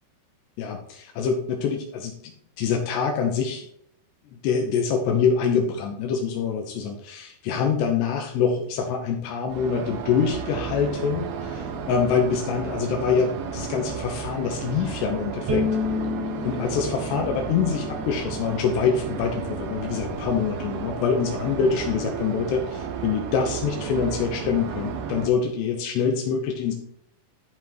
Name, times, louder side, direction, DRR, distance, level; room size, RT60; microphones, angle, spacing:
voice 1, 0.6-3.7 4.3-15.7 16.4-26.8, left 6 dB, 80° left, 3 dB, 3.1 m, -25 dB
sound 1, 9.5-25.3, right 6 dB, 70° right, 2.8 m, -33 dB
Bowed string instrument, 15.5-18.7, left 4 dB, 50° right, 3.0 m, -30 dB
13.0 x 5.9 x 3.1 m, 0.68 s
omnidirectional pair, 5.1 m